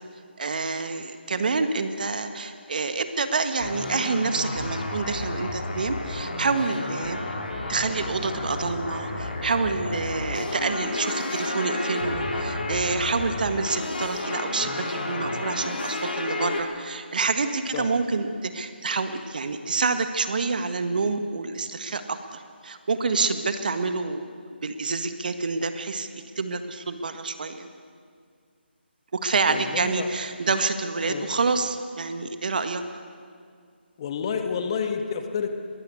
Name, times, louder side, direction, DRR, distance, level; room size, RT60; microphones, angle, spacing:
voice 1, 0.4-7.2 7.7-24.2 24.6-26.1 26.4-27.7 29.1-32.8, right 4 dB, 50° right, 9 dB, 1.6 m, -27 dB
sound 1, 3.6-16.6, left 2 dB, 55° left, 3.7 m, -31 dB
voice 2, 29.5-30.1 31.0-31.3 34.0-35.5, left 6 dB, 30° left, 6 dB, 1.7 m, -29 dB
22.0 x 18.0 x 8.5 m, 2.2 s
figure-of-eight pair, 150°, 6 cm